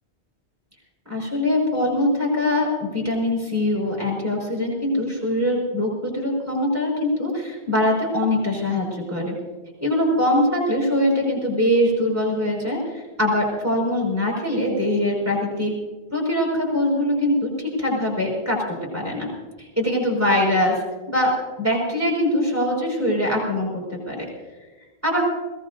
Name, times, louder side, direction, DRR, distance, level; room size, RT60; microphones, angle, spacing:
voice 1, 1.1-9.3 9.8-15.7 16.1-19.3 19.6-20.8 21.1-21.3 21.6-24.3 25.0-25.2, left 1 dB, 15° right, -3 dB, 5.6 m, -22 dB
22.5 x 18.5 x 2.7 m, 1.3 s
omnidirectional pair, 1.1 m